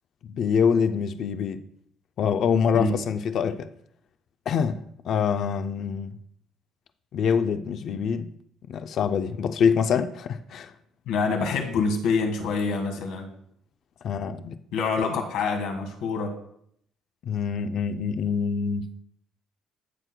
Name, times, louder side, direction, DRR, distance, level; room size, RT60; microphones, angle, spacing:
voice 1, 0.2-1.6 2.2-3.7 4.5-6.1 7.1-8.3 8.7-10.7 14.0-14.5 15.0-15.2 17.2-18.9, left 6 dB, 40° left, 0.4 m, -25 dB
voice 2, 11.1-13.3 14.7-16.4, left 4 dB, 80° left, 1.5 m, -26 dB
16.5 x 6.2 x 2.2 m
cardioid pair, 180°, 0 cm